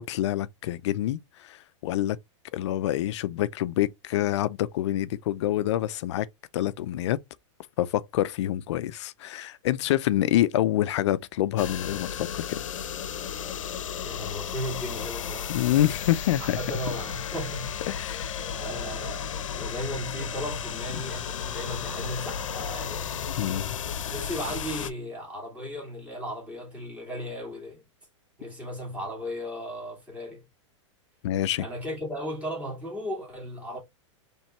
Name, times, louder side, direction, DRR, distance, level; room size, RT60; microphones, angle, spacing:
voice 1, 0.0-2.2 2.5-6.3 6.5-7.2 7.8-12.6 15.5-16.6 17.9-18.4 23.4-23.8 31.2-31.7, left 13 dB, 65° left, 0.5 m, -27 dB
sound 1, 11.6-24.9, left 7 dB, 90° left, 0.8 m, -34 dB
voice 2, 14.0-15.6 16.4-17.7 18.6-23.1 24.1-27.8 28.4-30.4 31.6-33.8, equal, 10° right, 2.4 m, -36 dB
4.3 x 3.4 x 3.1 m
supercardioid pair, 145°, 16 cm